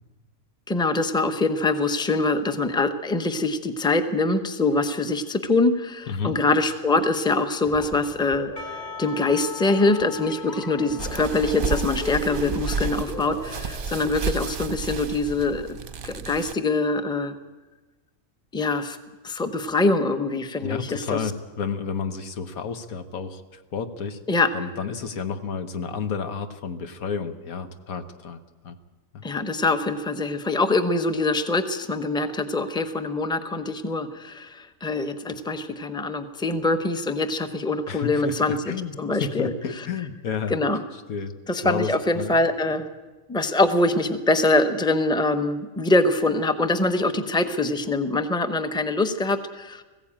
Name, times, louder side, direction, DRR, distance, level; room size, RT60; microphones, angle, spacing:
voice 1, 0.7-15.8 16.0-17.3 18.5-19.0 19.2-21.2 24.3-24.5 29.2-38.6 39.0-39.9 40.5-40.8 41.5-42.9 43.3-49.8, left 2 dB, 5° left, 8 dB, 0.8 m, -24 dB
sound 1, 7.6-14.1, left 3 dB, 35° left, 4.3 m, -39 dB
Percussion / Church bell, 8.6-13.6, left 5 dB, 50° left, 2.5 m, -41 dB
sound 2, 11.0-16.5, right 5 dB, 45° right, 0.8 m, -31 dB
voice 2, 20.6-24.2 24.5-28.8 29.1-29.3 37.9-40.6 41.1-41.3 41.6-42.3, left 6 dB, 90° left, 8 dB, 1.6 m, -31 dB
20.0 x 16.0 x 8.7 m, 1.2 s
omnidirectional pair, 1.4 m